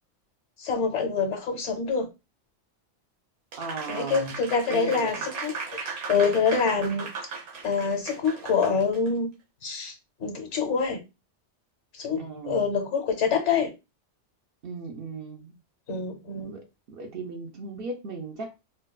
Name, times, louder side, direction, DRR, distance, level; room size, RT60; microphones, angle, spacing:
voice 1, 0.6-2.1 3.9-7.1 7.6-9.3 9.6-9.9 10.2-11.0 11.9-13.7 15.9-16.6, left 5 dB, 75° left, 1.1 m, -26 dB
Applause, 3.5-9.1, right 5 dB, 90° right, 1.1 m, -37 dB
voice 2, 3.6-4.4 4.7-5.2 12.2-12.7 14.6-15.5 16.4-18.5, right 3 dB, 60° right, 0.7 m, -37 dB
4.3 x 2.3 x 2.2 m
omnidirectional pair, 1.2 m